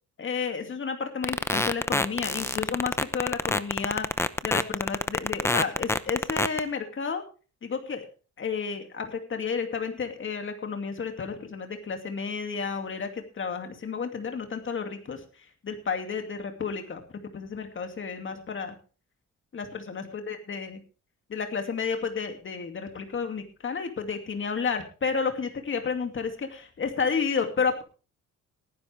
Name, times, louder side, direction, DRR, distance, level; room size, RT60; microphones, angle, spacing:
voice 1, 0.2-4.1 4.4-7.2 7.6-8.1 8.4-15.2 15.6-17.0 17.3-18.8 19.5-20.8 21.3-27.8, left 5 dB, 40° left, 5 dB, 2.4 m, -31 dB
sound 1, 1.2-6.6, left 2 dB, 10° left, 0.7 m, -25 dB
17.5 x 10.5 x 3.4 m, 0.36 s
cardioid pair, 90°, 30 cm